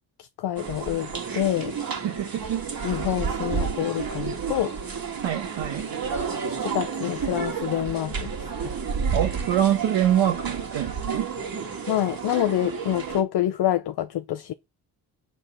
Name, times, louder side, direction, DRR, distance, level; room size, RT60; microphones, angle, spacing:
voice 1, 0.2-1.8 2.8-4.8 6.6-8.5 11.9-14.5, left 12 dB, 60° left, 0.7 m, -27 dB
sound 1, 0.6-13.2, right 6 dB, 50° right, 2.1 m, -31 dB
voice 2, 2.0-2.9 5.2-5.9 9.1-11.3, right 10 dB, 80° right, 1.4 m, -25 dB
6.5 x 3.9 x 6.2 m
supercardioid pair, 50°, 44 cm